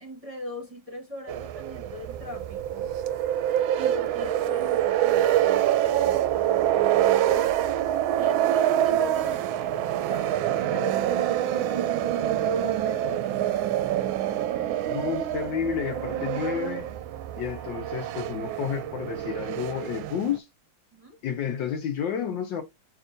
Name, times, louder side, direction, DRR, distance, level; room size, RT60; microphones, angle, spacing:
voice 1, 0.0-2.9 3.7-7.6 8.2-13.9 20.9-21.2, left 2 dB, 20° right, 1.0 m, -40 dB
sound 1, 1.3-20.4, right 12 dB, 90° right, 1.4 m, -26 dB
voice 2, 14.9-16.9 17.4-20.5 21.2-22.6, left 8 dB, 70° left, 1.3 m, -30 dB
7.1 x 2.9 x 2.5 m
omnidirectional pair, 2.1 m